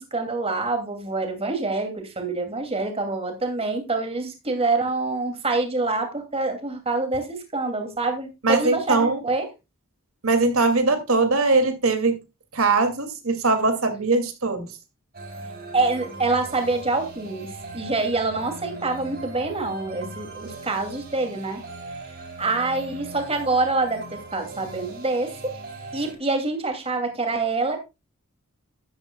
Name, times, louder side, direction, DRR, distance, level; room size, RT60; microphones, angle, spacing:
voice 1, 0.0-9.5 15.7-21.6 22.4-25.5 25.9-27.8, right 3 dB, 30° right, 2.5 m, -26 dB
voice 2, 8.4-9.2 10.2-12.2 12.5-14.7, right 3 dB, 85° right, 2.4 m, -21 dB
sound 1, 15.1-26.2, right 2 dB, 45° right, 5.9 m, -39 dB
12.5 x 11.0 x 2.3 m
head